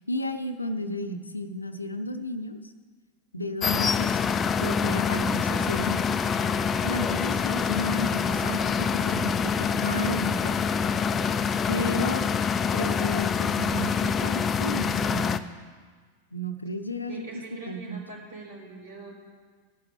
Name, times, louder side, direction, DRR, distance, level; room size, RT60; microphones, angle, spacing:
voice 1, 0.1-2.6 3.3-6.0 6.8-10.6 11.7-12.2 12.7-15.5 16.3-17.3 17.7-18.0, equal, 80° left, 8 dB, 0.7 m, -33 dB
sound 1, 3.6-15.4, left 6 dB, 20° left, 0.5 m, -26 dB
voice 2, 17.1-19.1, right 3 dB, 65° right, -3 dB, 4.3 m, -43 dB
17.0 x 11.5 x 3.4 m, 1.5 s
figure-of-eight pair, 90°, 0 cm